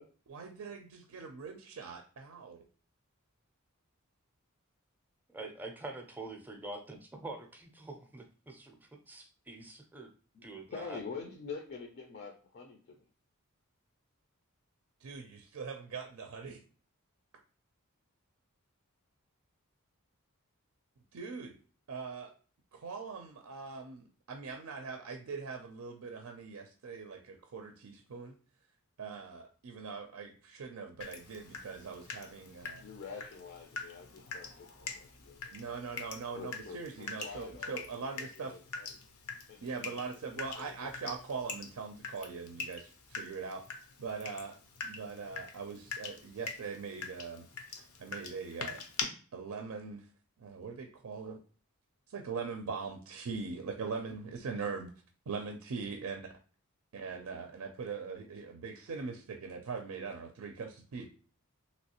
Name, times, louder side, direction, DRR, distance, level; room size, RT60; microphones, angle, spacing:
voice 1, 0.3-2.6 15.0-16.6 21.1-21.6 21.9-22.3 22.7-28.4 29.0-32.8 35.5-38.6 39.6-43.6 44.0-44.6 44.8-47.5 48.0-48.8 49.3-50.0 50.4-51.4 52.1-54.9 55.3-56.2 56.9-61.1, right 5 dB, 75° right, 4 dB, 0.4 m, -41 dB
voice 2, 5.3-10.1 10.4-11.0, right 2 dB, 10° right, 4 dB, 0.5 m, -45 dB
voice 3, 10.3-13.1 32.8-35.6 36.3-37.8 38.2-39.0 39.5-40.0 40.3-40.9, left 5 dB, 50° left, 2 dB, 0.5 m, -46 dB
Water tap faucet / Drip, 31.0-49.0, left 5 dB, 85° left, 0.7 m, -44 dB
3.1 x 2.9 x 2.9 m, 0.40 s
head